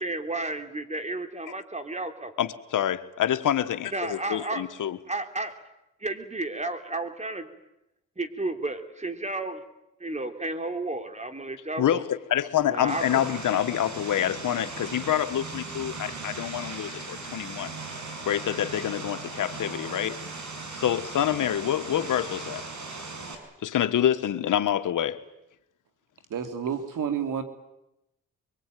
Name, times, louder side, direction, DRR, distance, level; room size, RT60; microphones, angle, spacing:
voice 1, 0.0-2.3 3.9-4.6 5.1-5.5 6.0-7.5 8.2-9.6 10.0-12.0 12.7-13.2, right 2 dB, 20° right, 7 dB, 3.3 m, -32 dB
voice 2, 2.4-5.0 11.8-17.8 18.2-20.2 20.7-22.6 23.6-25.2, left 10 dB, 85° left, 10 dB, 1.4 m, -27 dB
Vehicle, 12.9-23.4, right 3 dB, 65° right, 6.2 m, -38 dB
voice 3, 26.3-27.4, right 8 dB, 90° right, 7 dB, 2.8 m, -29 dB
23.5 x 23.5 x 9.2 m, 0.88 s
cardioid pair, 70°, 31 cm